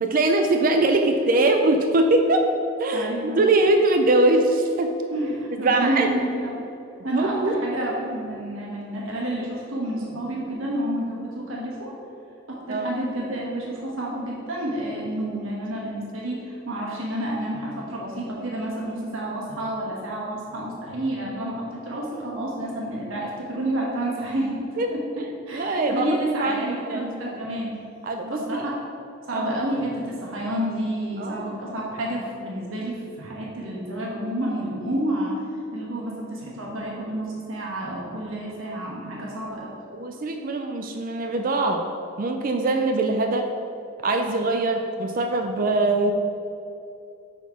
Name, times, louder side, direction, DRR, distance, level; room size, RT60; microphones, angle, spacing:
voice 1, 0.0-2.5 2.8-4.9 5.6-6.1 7.1-7.6 12.7-12.9 24.8-24.9 25.2-27.4 28.0-28.6 29.3-29.6 31.2-31.5 39.9-41.8 42.2-43.5 44.0-46.1, right 2 dB, 45° right, 5 dB, 0.4 m, -22 dB
voice 2, 2.9-3.4 5.1-6.5 7.0-11.9 12.5-24.6 24.8-25.0 25.5-27.7 28.3-28.7 29.3-35.4 35.7-39.7, right 1 dB, 75° right, -4 dB, 1.2 m, -29 dB
5.6 x 4.3 x 4.7 m, 2.7 s
head